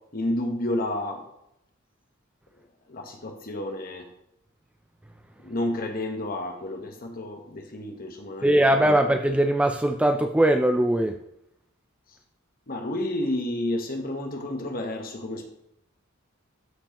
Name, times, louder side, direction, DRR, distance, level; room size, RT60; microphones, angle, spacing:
voice 1, 0.1-1.2 2.9-4.0 5.4-8.9 12.7-15.5, left 1 dB, 45° left, 3 dB, 1.2 m, -30 dB
voice 2, 8.4-11.2, right 1 dB, 5° right, 5 dB, 0.3 m, -21 dB
13.0 x 4.6 x 3.0 m, 0.78 s
head